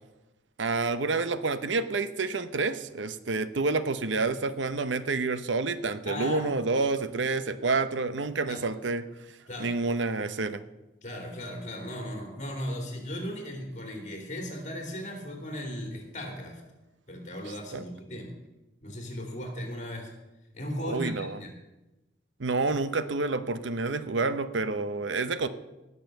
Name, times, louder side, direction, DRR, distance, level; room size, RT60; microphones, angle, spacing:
voice 1, 0.6-9.0 9.6-10.6 17.7-17.8 20.8-21.4 22.4-25.5, right 3 dB, 75° right, 12 dB, 0.8 m, -28 dB
voice 2, 6.0-6.5 8.5-8.6 9.5-9.7 11.0-16.6 17.1-18.3 18.8-20.1 20.5-21.5, equal, 40° left, 3 dB, 3.1 m, -37 dB
18.5 x 6.8 x 6.7 m, 1.0 s
head